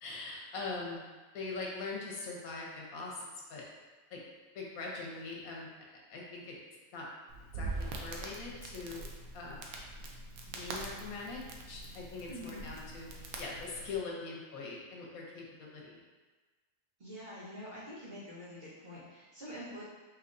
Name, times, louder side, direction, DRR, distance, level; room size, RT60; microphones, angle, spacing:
voice 1, 0.0-1.0 1.3-3.7 4.1-4.2 4.5-5.7 6.1-6.6 6.9-7.1 7.5-7.7 8.0-9.1 9.3-9.6 10.5-13.1 13.4-16.0, left 3 dB, 80° left, -2 dB, 1.3 m, -42 dB
Crackle, 7.3-14.0, right 2 dB, 85° right, 1.1 m, -43 dB
voice 2, 12.3-12.6 17.0-19.8, equal, 45° right, -9 dB, 1.4 m, -46 dB
5.6 x 2.9 x 2.6 m, 1.3 s
omnidirectional pair, 1.5 m